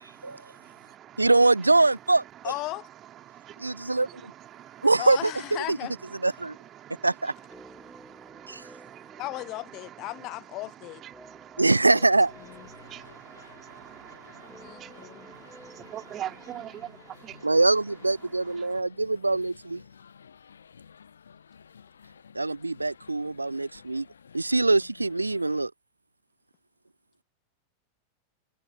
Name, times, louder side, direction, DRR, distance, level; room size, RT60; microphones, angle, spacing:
voice 1, 0.0-18.8, right 12 dB, 30° right, 3.1 m, -46 dB
voice 2, 1.2-2.2 3.6-4.1 4.8-5.8 6.2-6.5 7.0-7.3 11.6-12.3 17.4-19.8 22.3-24.1 24.3-25.7, right 2 dB, 80° right, 0.3 m, -23 dB
voice 3, 2.4-2.9 5.0-6.0 9.2-11.0 11.9-12.1 12.4-12.7 14.6-15.3, left 20 dB, 40° left, 0.5 m, -36 dB
sound 1, 7.4-19.5 19.7-19.8, equal, ahead, 1.2 m, -55 dB
sound 2, 12.2-25.7, left 7 dB, 70° left, 0.9 m, -53 dB
figure-of-eight pair, 90°, 0 cm